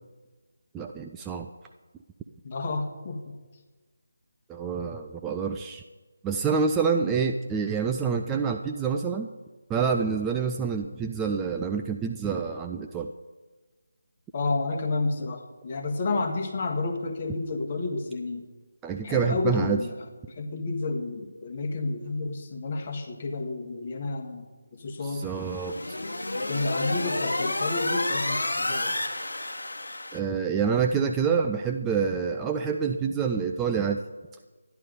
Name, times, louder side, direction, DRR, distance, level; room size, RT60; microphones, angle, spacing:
voice 1, 0.7-1.5 4.5-5.8 6.2-9.3 9.7-13.1 18.8-19.8 25.0-26.0 30.1-34.0, right 6 dB, 10° right, 4 dB, 0.4 m, -27 dB
voice 2, 2.4-3.4 14.3-18.4 19.0-19.9 20.3-24.5 24.7-25.3 26.3-28.9, left 3 dB, 35° left, 5 dB, 1.6 m, -30 dB
sound 1, 25.2-30.2, left 2 dB, 70° left, 1.1 m, -30 dB
12.5 x 11.0 x 5.3 m, 1.3 s
figure-of-eight pair, 155°, 0 cm